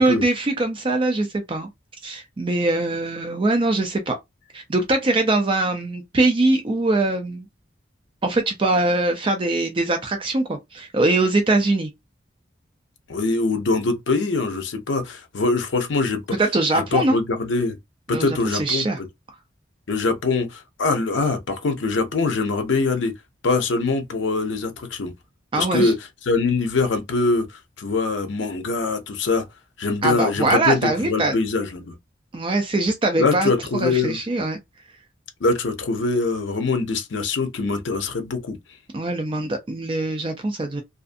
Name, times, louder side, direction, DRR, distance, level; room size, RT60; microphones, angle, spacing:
voice 1, 0.0-1.7 2.0-4.2 4.5-7.5 8.2-11.9 16.4-17.2 18.1-19.0 25.5-25.9 30.0-31.4 32.3-34.6 38.9-40.8, right 2 dB, 30° right, 0.4 m, -22 dB
voice 2, 13.1-16.2 16.9-17.8 18.1-18.9 19.9-23.1 23.4-25.1 25.6-25.9 26.3-27.5 27.8-29.5 29.8-32.0 33.2-34.2 35.4-38.6, left 3 dB, 75° left, 0.6 m, -23 dB
2.5 x 2.4 x 2.5 m
head